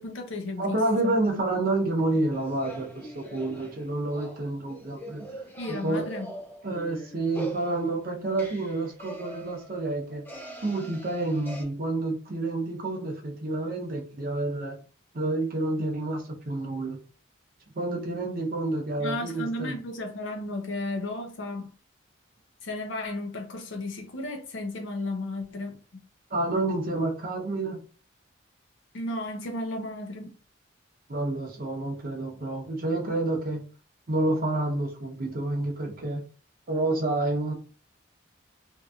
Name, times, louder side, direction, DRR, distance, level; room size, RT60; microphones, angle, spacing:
voice 1, 0.0-1.2 5.6-6.3 19.0-21.7 22.6-25.7 28.9-30.3, left 2 dB, 75° left, 0.6 m, -34 dB
voice 2, 0.6-5.4 5.7-6.0 6.6-10.2 10.6-14.8 15.1-17.0 17.7-19.8 26.3-27.8 31.1-33.6 34.1-36.2 36.7-37.5, right 2 dB, 50° right, 0.7 m, -29 dB
sound 1, 2.3-11.6, right 1 dB, 10° left, 0.5 m, -43 dB
2.8 x 2.6 x 2.3 m
head